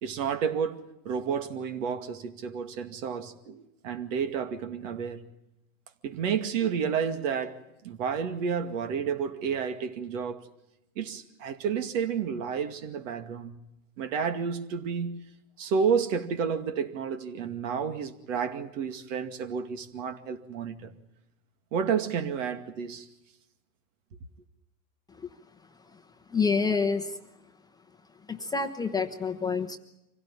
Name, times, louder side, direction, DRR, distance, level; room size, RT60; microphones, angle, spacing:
voice 1, 0.0-5.3 6.0-7.6 7.8-10.4 11.0-13.7 14.0-15.3 15.6-20.9 21.7-23.1, right 6 dB, 60° right, 2.3 m, -31 dB
voice 2, 26.3-27.2 28.3-29.8, left 5 dB, 10° left, 1.0 m, -28 dB
25.5 x 17.0 x 8.8 m
supercardioid pair, 135°, 43 cm